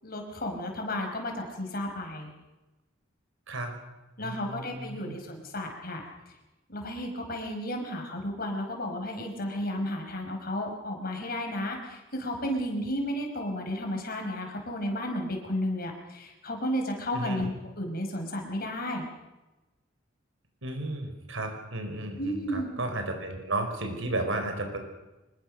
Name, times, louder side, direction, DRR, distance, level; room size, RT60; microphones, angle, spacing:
voice 1, 0.0-2.3 4.2-6.0 6.7-19.1 22.2-22.7, left 1 dB, 50° left, 3 dB, 5.4 m, -33 dB
voice 2, 4.2-5.1 17.1-17.4 20.6-24.8, right 2 dB, 80° right, 5 dB, 5.0 m, -33 dB
25.0 x 22.0 x 6.6 m, 1.0 s
head